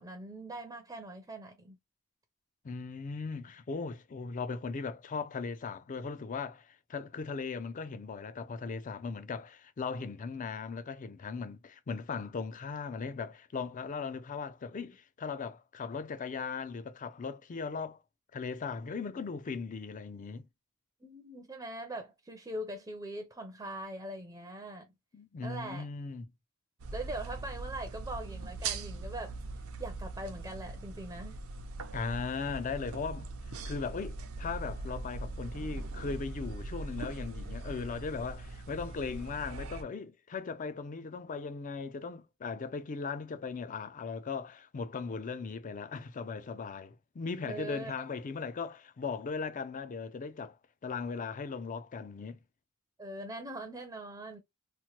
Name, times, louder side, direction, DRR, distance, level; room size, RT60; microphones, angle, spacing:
voice 1, 0.0-1.8 21.0-24.9 25.4-25.9 26.9-29.4 29.8-31.4 47.4-47.9 53.0-54.4, right 1 dB, 15° right, 0.5 m, -42 dB
voice 2, 2.6-18.0 18.3-20.5 25.1-26.3 31.9-33.3 33.7-50.6 50.8-52.4, left 5 dB, 40° left, 0.4 m, -38 dB
sound 1, 26.8-39.8, right 3 dB, 75° right, 0.6 m, -41 dB
3.0 x 2.1 x 2.8 m
head